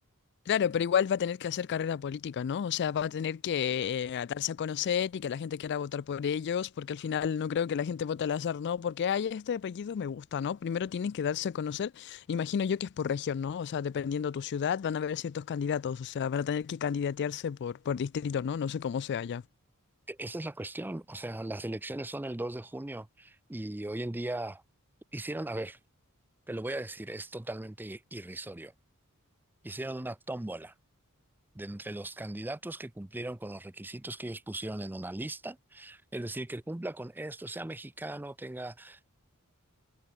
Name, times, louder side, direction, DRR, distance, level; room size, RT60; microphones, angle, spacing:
voice 1, 0.5-19.4, left 7 dB, 50° left, 0.3 m, -31 dB
voice 2, 20.1-24.6 25.1-25.8 26.5-28.7 29.6-30.7 31.5-39.0, right 1 dB, 10° right, 0.5 m, -38 dB
head